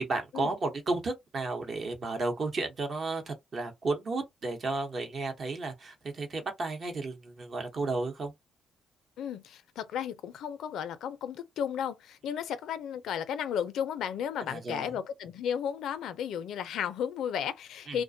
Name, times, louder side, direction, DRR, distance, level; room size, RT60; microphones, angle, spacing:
voice 1, 0.0-8.3 14.5-14.9 17.9-18.0, right 3 dB, 45° right, 0.9 m, -33 dB
voice 2, 9.2-18.0, left 8 dB, 80° left, 0.4 m, -34 dB
2.4 x 2.1 x 2.6 m
cardioid pair, 90°, 0 cm